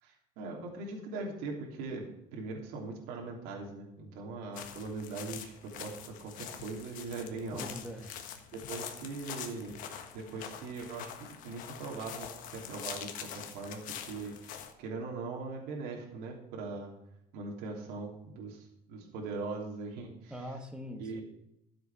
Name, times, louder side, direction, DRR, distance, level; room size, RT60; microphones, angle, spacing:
voice 1, 0.0-7.7 8.7-9.8 10.1-16.9 17.3-20.5 21.0-21.2, right 3 dB, 75° right, 0 dB, 3.1 m, -41 dB
sound 1, 4.5-14.7, left 9 dB, 55° left, 1.5 m, -45 dB
voice 2, 7.5-8.2 20.3-21.2, equal, 5° right, 5 dB, 1.4 m, -42 dB
12.5 x 7.7 x 6.0 m, 0.82 s
cardioid pair, 150°, 16 cm